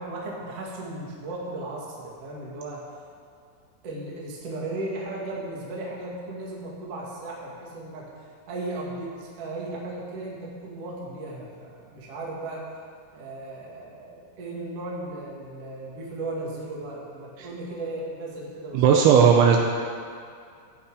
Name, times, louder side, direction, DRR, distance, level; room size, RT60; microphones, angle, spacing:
voice 1, 0.0-2.8 3.8-8.1 8.5-12.6 13.1-18.9, right 2 dB, 50° right, -4 dB, 1.9 m, -36 dB
voice 2, 18.7-19.6, right 7 dB, 80° right, 1 dB, 2.9 m, -16 dB
14.5 x 8.6 x 4.9 m, 2.2 s
omnidirectional pair, 5.8 m